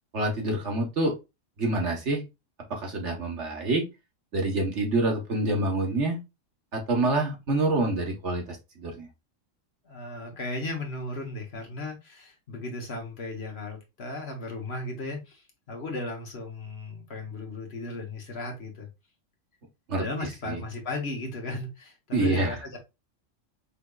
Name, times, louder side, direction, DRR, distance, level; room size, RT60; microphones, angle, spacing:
voice 1, 0.1-1.1 1.6-2.2 2.7-3.9 4.3-6.2 6.7-9.1 19.9-20.6 22.1-22.6, right 2 dB, 65° right, 1.6 m, -27 dB
voice 2, 9.8-15.4 15.7-18.9 20.0-22.8, left 2 dB, 55° left, 1.5 m, -36 dB
5.7 x 3.4 x 2.4 m
omnidirectional pair, 1.3 m